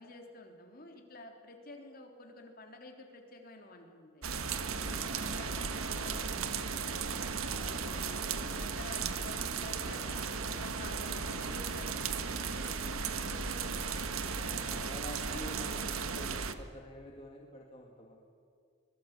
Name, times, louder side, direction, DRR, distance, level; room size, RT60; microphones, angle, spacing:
voice 1, 0.0-4.5 4.7-6.8 7.6-13.8 14.3-16.5, left 2 dB, 45° left, 2 dB, 3.6 m, -51 dB
sound 1, 4.2-16.6, right 5 dB, 85° right, 1.5 m, -36 dB
voice 2, 5.3-5.7 7.5-8.1 14.7-18.2, equal, 30° left, 0 dB, 2.1 m, -48 dB
24.5 x 22.0 x 8.5 m, 2.3 s
head